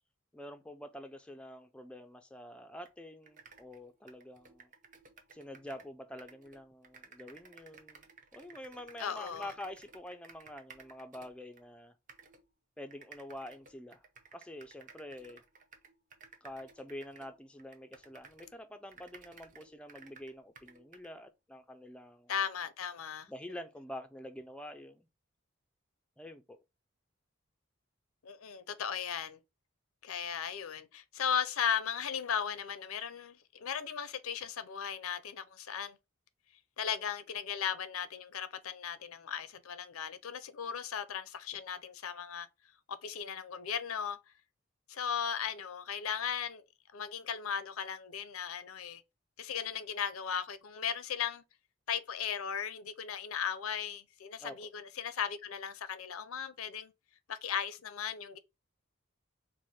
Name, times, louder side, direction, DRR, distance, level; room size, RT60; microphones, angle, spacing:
voice 1, 0.3-4.7 5.3-8.1 8.3-11.9 12.8-14.0 14.3-15.4 16.4-22.3 23.3-25.1 26.2-26.6 54.4-54.7, left 1 dB, 5° left, 0.3 m, -47 dB
sound 1, 2.8-2.9 3.2-5.9 6.2-11.6 12.1-12.4 12.9-18.6 18.9-21.1, right 5 dB, 35° right, 0.6 m, -56 dB
voice 2, 9.0-9.5 22.3-23.3 28.2-29.4 30.0-36.0 36.8-42.5 42.9-44.2 44.9-46.6 46.9-49.0 49.4-51.4 51.9-56.9 57.3-58.4, left 8 dB, 85° left, 0.6 m, -37 dB
4.7 x 2.1 x 4.2 m
head